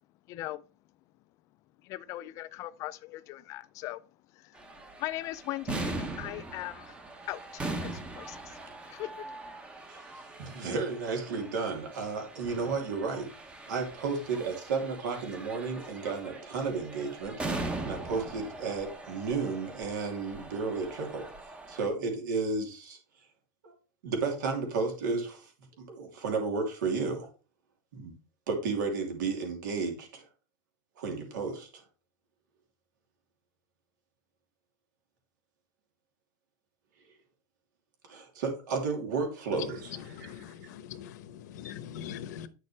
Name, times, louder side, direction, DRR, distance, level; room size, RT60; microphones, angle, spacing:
voice 1, 0.3-0.6 1.9-4.0 5.0-6.9 7.3-8.4 8.9-9.1, left 16 dB, 30° left, 0.4 m, -39 dB
sound 1, 4.5-21.9, right 2 dB, 10° right, 0.7 m, -41 dB
voice 2, 9.9-13.3 13.7-17.3 17.8-21.2 21.7-23.0 23.6-23.7 24.0-25.5 25.8-27.3 27.9-28.1 28.5-30.2 31.0-31.7 38.1-40.4, right 4 dB, 85° right, 2.9 m, -33 dB
voice 3, 40.1-42.5, left 9 dB, 70° left, 0.9 m, -42 dB
9.2 x 6.5 x 3.3 m
supercardioid pair, 165°, 10 cm